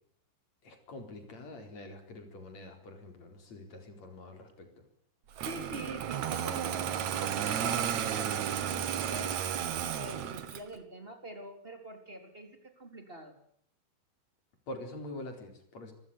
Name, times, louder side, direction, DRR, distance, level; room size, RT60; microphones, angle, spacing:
voice 1, 0.6-4.9 14.7-15.9, left 1 dB, 35° left, 6 dB, 5.0 m, -45 dB
voice 2, 5.4-6.9 7.2-13.4, right 1 dB, 15° right, 5 dB, 3.1 m, -45 dB
Engine starting, 5.4-10.7, right 9 dB, 70° right, 1.7 m, -33 dB
27.0 x 15.0 x 9.7 m, 0.65 s
omnidirectional pair, 5.5 m